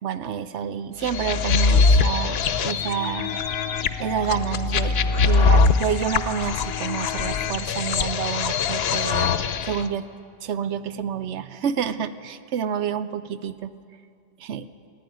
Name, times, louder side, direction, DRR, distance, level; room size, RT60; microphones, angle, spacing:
voice 1, 0.0-3.4 3.7-10.1 10.4-13.7 14.4-14.7, right 8 dB, 85° right, 13 dB, 1.0 m, -29 dB
sound 1, 1.0-9.8, left 4 dB, 65° left, 0.9 m, -22 dB
14.5 x 10.5 x 9.3 m, 2.3 s
omnidirectional pair, 1.2 m